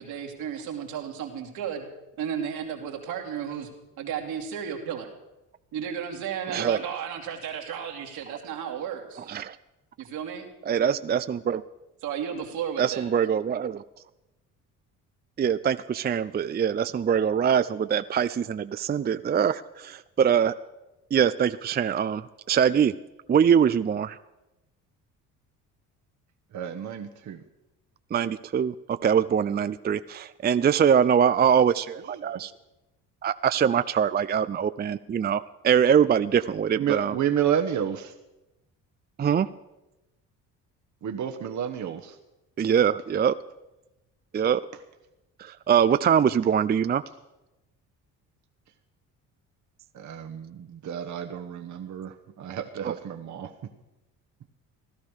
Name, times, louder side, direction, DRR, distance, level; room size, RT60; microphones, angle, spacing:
voice 1, 0.0-1.9 2.2-3.7 4.0-5.1 5.7-9.3 10.0-10.5 12.0-13.1, right 8 dB, 80° right, 2 dB, 2.6 m, -33 dB
voice 2, 6.5-6.8 9.2-9.6 10.7-11.6 12.8-13.8 15.4-20.5 21.1-22.9 23.3-24.2 28.1-32.5 33.2-37.2 39.2-39.5 42.6-43.4 44.3-44.6 45.4-47.0 52.8-52.9, right 8 dB, 25° right, 13 dB, 0.5 m, -23 dB
voice 3, 26.5-27.4 32.1-32.4 36.7-38.1 41.0-42.2 49.9-53.5, right 9 dB, 50° right, 6 dB, 1.2 m, -30 dB
16.5 x 12.0 x 6.4 m, 0.97 s
supercardioid pair, 75°, 36 cm